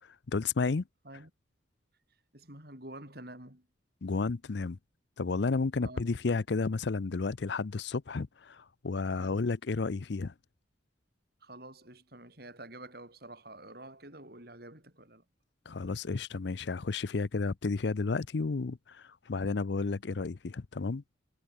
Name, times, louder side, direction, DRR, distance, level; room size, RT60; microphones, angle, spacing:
voice 1, 0.3-0.8 4.0-4.8 5.2-10.3 15.7-21.0, left 4 dB, 60° left, 0.6 m, -32 dB
voice 2, 2.3-3.7 5.8-6.2 9.2-9.4 11.4-15.2, right 1 dB, 50° right, 6.5 m, -48 dB
head